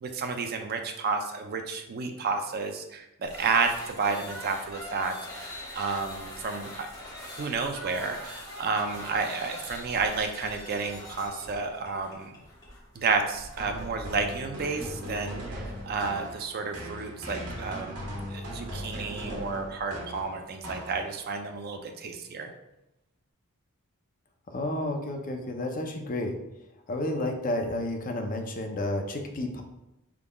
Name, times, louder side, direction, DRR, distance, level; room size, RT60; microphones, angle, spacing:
voice 1, 0.0-6.9 7.2-12.4 12.9-18.0 18.3-22.5, right 4 dB, 45° right, 5 dB, 0.4 m, -31 dB
sound 1, 3.2-16.4, left 1 dB, 15° left, 1.1 m, -44 dB
sound 2, 13.6-21.4, equal, 85° right, 1.2 m, -39 dB
voice 2, 24.5-26.4 26.9-29.6, left 1 dB, 40° left, 4 dB, 0.5 m, -31 dB
4.9 x 3.6 x 2.3 m, 0.93 s
head